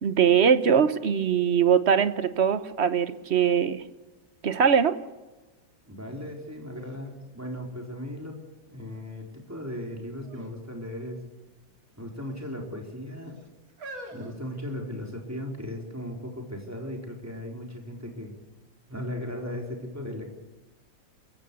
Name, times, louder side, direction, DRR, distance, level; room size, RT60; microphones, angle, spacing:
voice 1, 0.0-3.8 4.4-5.0, right 7 dB, 45° right, 12 dB, 0.9 m, -22 dB
voice 2, 5.8-8.4 8.7-11.2 12.0-13.4 14.1-18.3 18.9-20.3, left 1 dB, 10° right, 1 dB, 4.0 m, -37 dB
sound 1, 6.2-6.3 6.8-8.3 8.9-9.4 10.2-10.6 10.9-11.0 11.9-12.5 13.2-15.3 16.0-16.1, right 1 dB, 85° right, 3.8 m, -47 dB
29.0 x 15.5 x 7.0 m, 1.2 s
omnidirectional pair, 2.1 m